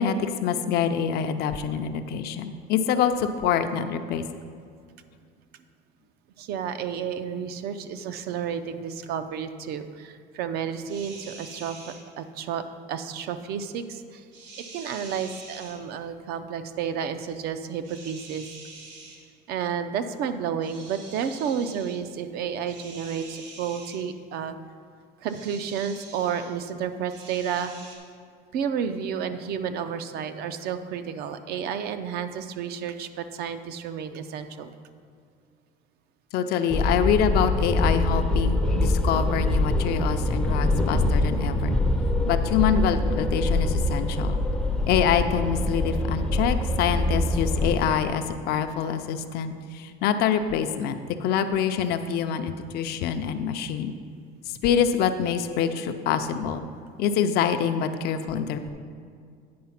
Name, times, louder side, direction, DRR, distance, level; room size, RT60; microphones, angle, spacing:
voice 1, 0.0-4.2 36.3-41.8 42.2-44.4 44.9-53.9 54.5-56.7 57.0-58.7, left 7 dB, 60° left, 8 dB, 0.5 m, -25 dB
voice 2, 6.4-11.8 12.2-12.6 12.9-14.3 14.6-18.5 19.5-24.5 25.2-27.7 28.5-34.7, right 7 dB, 55° right, 10 dB, 0.5 m, -31 dB
sound 1, 10.9-12.0 14.3-15.8 17.8-19.2 20.6-22.0 22.6-24.0 25.2-26.5 27.1-28.0, right 3 dB, 85° right, 1.9 m, -45 dB
sound 2, 36.7-47.8, left 1 dB, 5° left, 0.5 m, -24 dB
9.4 x 4.7 x 5.8 m, 2.2 s
cardioid pair, 165°, 19 cm